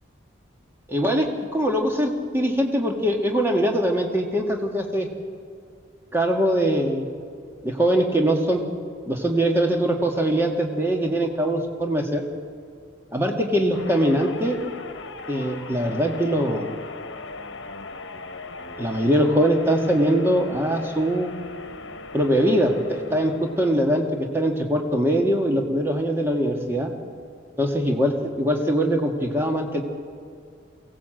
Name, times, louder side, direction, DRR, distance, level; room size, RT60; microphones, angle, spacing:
voice 1, 0.9-5.1 6.1-7.1 7.6-8.6 9.0-12.2 13.1-14.6 15.3-16.7 18.8-21.3 22.1-26.9 27.6-28.1 28.4-29.8, equal, 10° right, 2 dB, 1.7 m, -22 dB
sound 1, 13.7-24.1, left 3 dB, 70° left, 1.2 m, -39 dB
23.0 x 17.5 x 7.8 m, 2.2 s
head